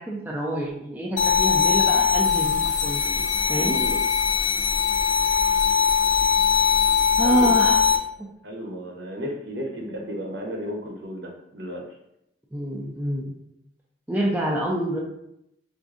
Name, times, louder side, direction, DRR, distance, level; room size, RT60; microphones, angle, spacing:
voice 1, 0.1-3.2 3.5-3.8 7.2-7.8 12.5-13.3 14.1-15.0, right 1 dB, 10° right, -3 dB, 0.3 m, -27 dB
sound 1, 1.2-8.0, left 7 dB, 80° left, 0.4 m, -21 dB
voice 2, 3.6-4.0 7.1-7.8 8.1-11.8, equal, 65° right, 0 dB, 0.8 m, -34 dB
4.6 x 2.5 x 2.4 m, 0.81 s
head